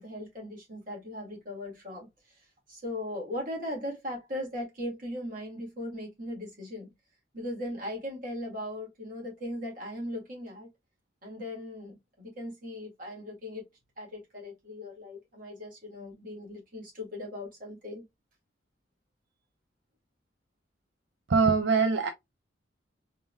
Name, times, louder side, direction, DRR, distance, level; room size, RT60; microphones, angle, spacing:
voice 1, 0.0-2.4 2.7-6.9 7.3-10.7 11.2-13.6 14.0-18.0, left 1 dB, 45° right, 2.1 m, -38 dB
voice 2, 21.3-22.1, right 5 dB, 65° right, 0.5 m, -23 dB
3.9 x 3.7 x 2.3 m
head